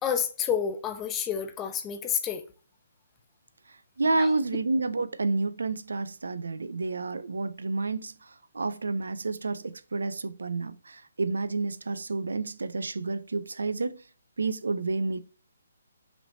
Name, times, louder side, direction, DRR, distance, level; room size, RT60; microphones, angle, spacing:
voice 1, 0.0-2.4 4.2-4.3, left 8 dB, 15° left, 0.6 m, -29 dB
voice 2, 4.0-14.0 14.4-15.2, right 3 dB, 85° right, 0.5 m, -30 dB
5.9 x 3.2 x 2.6 m
hypercardioid pair, 150°, 0 cm